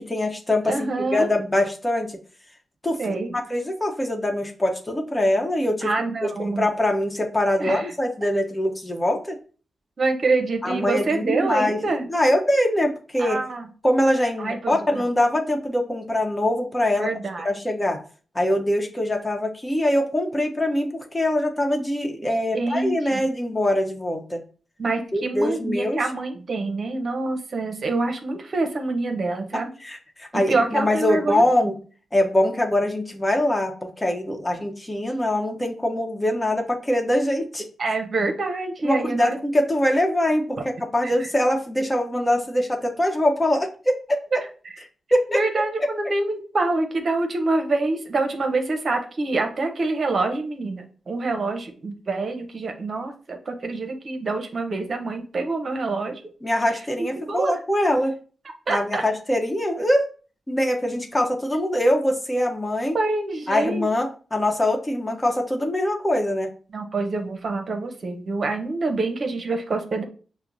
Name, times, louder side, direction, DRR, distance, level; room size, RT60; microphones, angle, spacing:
voice 1, 0.0-2.1 2.8-3.0 3.3-5.9 6.2-9.4 10.6-11.8 12.1-13.4 13.8-17.1 17.4-18.0 18.3-24.4 25.1-26.0 29.8-31.7 32.1-37.7 38.8-40.6 40.9-44.0 45.1-45.4 56.4-58.1 58.7-60.1 60.5-63.0 63.5-66.5, left 1 dB, 25° left, 2 dB, 1.0 m, -23 dB
voice 2, 0.7-1.3 3.0-3.3 5.8-6.7 7.6-7.9 10.0-12.1 13.2-13.7 14.4-15.0 17.0-17.5 22.2-23.2 24.8-29.7 30.3-31.7 37.8-39.4 41.0-41.3 44.3-44.4 44.6-44.7 45.3-56.2 57.0-57.5 58.7-59.0 62.9-63.9 66.7-70.0, right 3 dB, 60° right, 4 dB, 0.7 m, -26 dB
5.7 x 2.1 x 2.6 m, 0.39 s
supercardioid pair, 40°, 0 cm